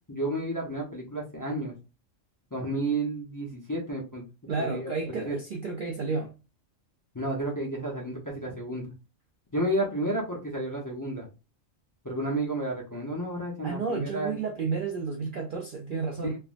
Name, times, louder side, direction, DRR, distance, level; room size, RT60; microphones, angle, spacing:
voice 1, 0.1-1.7 2.5-4.2 4.6-5.4 7.1-8.9 9.5-11.3 12.0-14.5 16.2-16.4, right 1 dB, 20° left, 0.5 m, -31 dB
voice 2, 4.5-6.3 13.6-16.4, right 4 dB, 60° right, 0.5 m, -31 dB
3.3 x 2.1 x 2.4 m
omnidirectional pair, 1.4 m